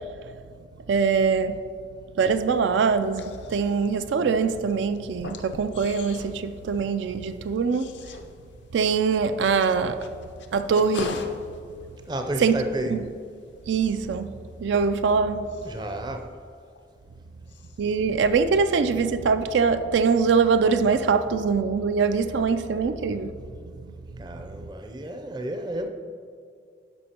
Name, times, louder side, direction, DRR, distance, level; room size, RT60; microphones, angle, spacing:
voice 1, 0.9-1.6 2.2-7.9 8.7-10.1 10.5-11.3 12.4-12.6 12.9-13.1 13.7-15.5 17.8-23.4 23.8-23.9 24.6-24.7, right 5 dB, 85° right, 0.3 m, -23 dB
sound 1, 2.9-17.2 17.5-18.1, left 3 dB, 85° left, 0.5 m, -43 dB
voice 2, 12.1-12.9 15.6-16.3 24.2-25.9, right 1 dB, 25° right, 0.4 m, -31 dB
11.5 x 5.3 x 2.8 m
head